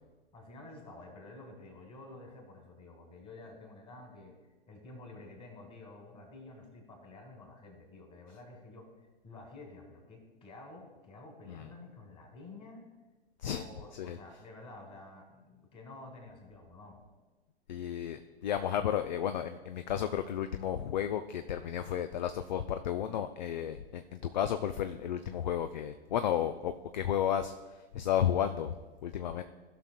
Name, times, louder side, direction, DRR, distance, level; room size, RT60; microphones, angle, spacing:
voice 1, 0.3-4.4 4.7-8.9 9.2-12.8 13.4-17.0, left 2 dB, 15° left, 2 dB, 2.0 m, -50 dB
voice 2, 17.7-28.7 29.0-29.4, left 9 dB, 45° left, 9 dB, 0.4 m, -33 dB
16.5 x 5.9 x 2.2 m, 1.2 s
figure-of-eight pair, 110°, 32 cm